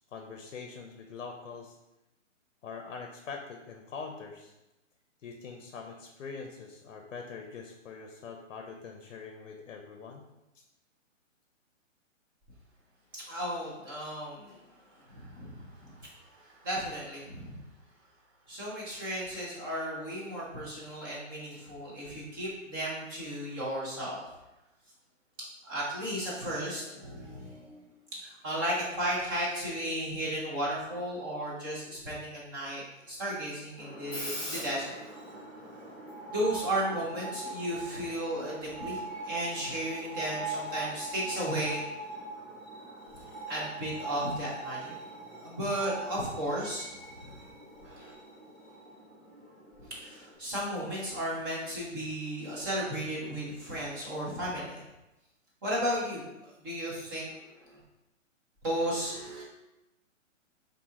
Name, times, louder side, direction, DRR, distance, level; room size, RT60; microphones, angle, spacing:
voice 1, 0.1-1.8 2.6-4.5 5.2-10.2 10.5-10.6, left 5 dB, 65° left, 3 dB, 0.6 m, -43 dB
voice 2, 13.1-17.6 18.5-24.2 25.6-27.9 28.2-35.0 36.3-41.8 43.5-45.0 45.3-46.9 47.2-47.4 47.8-48.1 49.8-54.8 55.6-57.8 58.6-59.4, right 1 dB, 15° right, -6 dB, 0.7 m, -35 dB
Screech, 33.8-50.4, right 2 dB, 5° left, 1.1 m, -41 dB
4.1 x 2.7 x 3.6 m, 0.97 s
hypercardioid pair, 155°, 39 cm